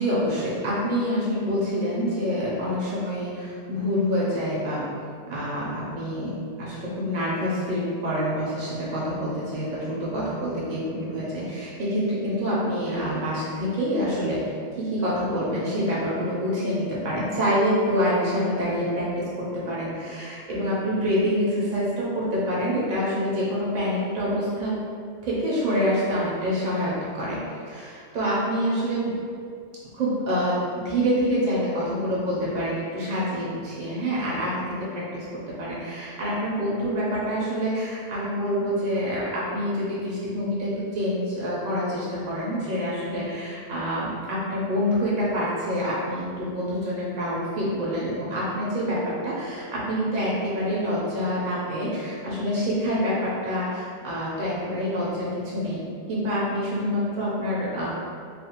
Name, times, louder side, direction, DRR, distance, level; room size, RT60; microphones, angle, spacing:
voice 1, 0.0-4.9 5.3-14.4 14.8-24.7 25.2-27.4 27.7-29.2 29.9-35.3 35.6-57.9, equal, 55° right, -7 dB, 0.6 m, -26 dB
2.4 x 2.0 x 2.7 m, 2.3 s
omnidirectional pair, 1.1 m